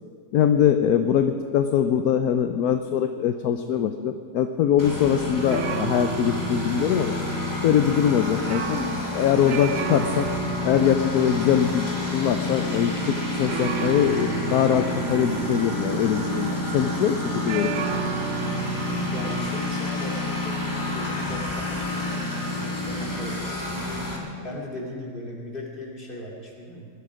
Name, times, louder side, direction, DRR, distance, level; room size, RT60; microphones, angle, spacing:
voice 1, 0.3-7.1 7.6-10.3 10.6-17.2 17.4-17.9, left 9 dB, 70° left, 8 dB, 1.1 m, -22 dB
Engine, 4.8-24.2, left 2 dB, 10° left, 2.4 m, -29 dB
sound 1, 5.5-17.1 17.5-19.6, right 9 dB, 65° right, 0.6 m, -34 dB
voice 2, 19.1-20.6 20.9-24.2 24.4-26.9, left 1 dB, 30° left, -2 dB, 3.1 m, -38 dB
21.5 x 13.0 x 5.1 m, 2.2 s
omnidirectional pair, 1.8 m